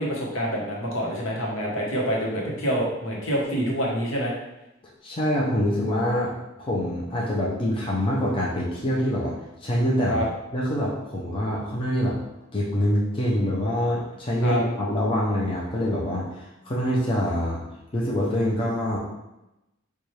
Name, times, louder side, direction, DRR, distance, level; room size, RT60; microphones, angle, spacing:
voice 1, 0.0-4.3 10.1-10.2 14.4-14.6, equal, 70° left, -3 dB, 1.0 m, -26 dB
voice 2, 5.0-6.3 6.6-9.3 9.6-10.2 10.5-12.2 12.5-17.6 17.9-19.0, equal, 25° left, -5 dB, 0.5 m, -25 dB
4.2 x 2.3 x 3.1 m, 0.94 s
head